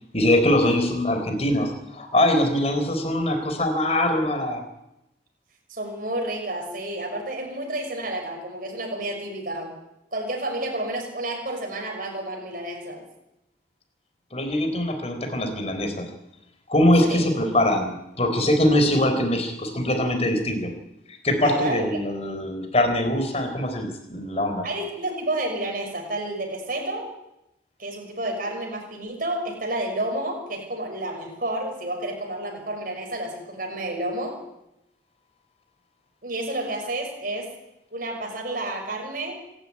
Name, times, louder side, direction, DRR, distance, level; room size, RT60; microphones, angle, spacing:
voice 1, 0.1-4.6 14.3-16.1 16.7-20.7 21.2-24.7, left 1 dB, 35° left, 6 dB, 4.3 m, -22 dB
voice 2, 5.7-9.7 10.1-13.0 17.0-17.3 21.4-22.0 24.6-27.1 27.8-34.4 36.2-37.5 37.9-39.4, right 1 dB, 50° right, 2 dB, 6.2 m, -30 dB
26.0 x 12.5 x 9.9 m, 0.87 s
head